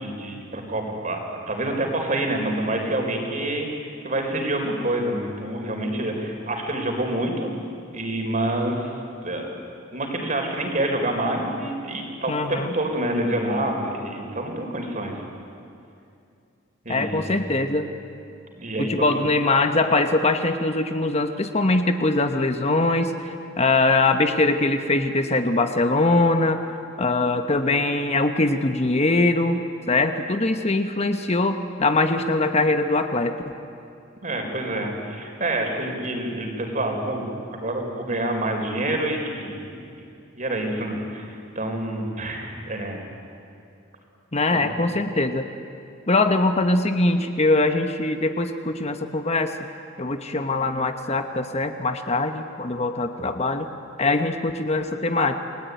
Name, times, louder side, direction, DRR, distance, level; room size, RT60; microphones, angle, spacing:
voice 1, 0.0-3.7 4.0-7.5 7.9-8.9 9.2-9.5 9.9-15.2 16.8-17.4 18.6-19.1 34.2-37.2 37.5-39.9 40.3-43.0 44.5-44.6, right 1 dB, 40° right, 2 dB, 4.3 m, -27 dB
voice 2, 12.3-12.8 16.9-17.9 18.8-29.6 29.9-33.3 44.3-45.5 46.1-49.5 50.0-53.7 54.0-55.4, left 2 dB, 35° left, 7 dB, 1.2 m, -22 dB
29.5 x 20.0 x 9.4 m, 2.5 s
head